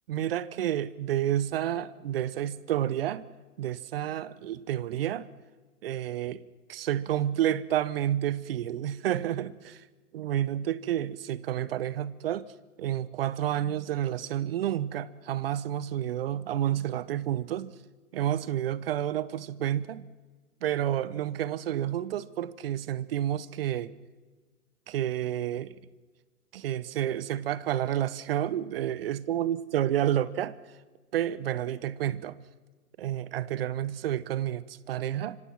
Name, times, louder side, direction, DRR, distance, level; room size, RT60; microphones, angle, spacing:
voice 1, 0.1-3.3 3.6-5.3 5.8-6.4 6.7-9.8 10.1-12.5 12.8-17.7 18.1-20.1 20.6-23.9 24.9-25.7 26.5-30.5 31.1-32.4 33.0-35.4, right 11 dB, 40° right, 0.9 m, -30 dB
25.5 x 25.5 x 6.0 m
figure-of-eight pair, 120°, 45 cm